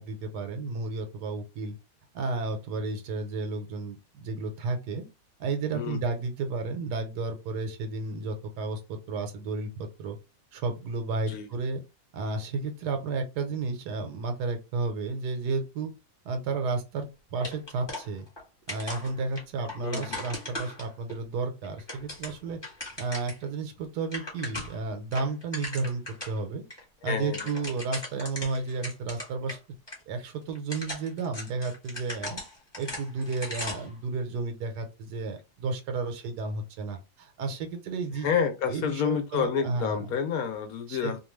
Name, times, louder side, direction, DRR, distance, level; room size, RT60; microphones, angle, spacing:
voice 1, 0.0-1.7 2.1-5.1 5.4-10.2 10.5-11.8 12.1-15.9 16.2-18.3 18.7-22.6 23.0-26.6 27.0-29.6 30.1-32.4 32.8-38.3 38.7-40.0 40.9-41.2, right 3 dB, 90° right, 1.3 m, -32 dB
sound 1, 17.4-18.4 18.7-21.2 21.6-23.4 23.8-23.9 24.0-24.8 25.1-26.4 26.7-26.8 27.1-29.6 29.9-30.0 30.5-33.9, left 1 dB, 20° left, 1.0 m, -38 dB
voice 2, 19.6-20.3 27.0-27.4 38.2-41.2, left 7 dB, 70° left, 1.1 m, -29 dB
2.9 x 2.3 x 3.1 m
omnidirectional pair, 1.7 m